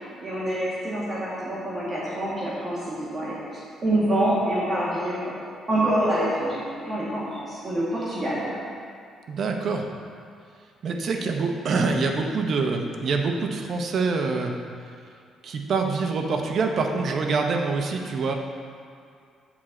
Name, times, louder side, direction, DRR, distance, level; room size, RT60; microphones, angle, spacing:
voice 1, 0.2-5.3 5.7-8.6, right 1 dB, 30° right, -8 dB, 1.7 m, -26 dB
voice 2, 9.3-9.9 10.8-14.5 15.4-18.3, right 4 dB, 50° right, 3 dB, 0.8 m, -25 dB
7.3 x 4.3 x 6.3 m, 2.3 s
cardioid pair, 125°, 0 cm